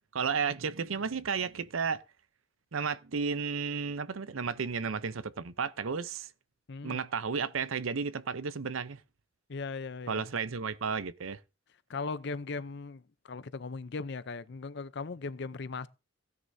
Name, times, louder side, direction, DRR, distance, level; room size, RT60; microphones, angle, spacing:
voice 1, 0.1-2.0 2.7-6.3 6.8-9.0 10.1-11.4, right 5 dB, 80° right, 0.7 m, -33 dB
voice 2, 6.7-7.0 9.5-10.2 11.9-15.9, left 4 dB, 55° left, 0.6 m, -38 dB
16.5 x 9.5 x 2.7 m
head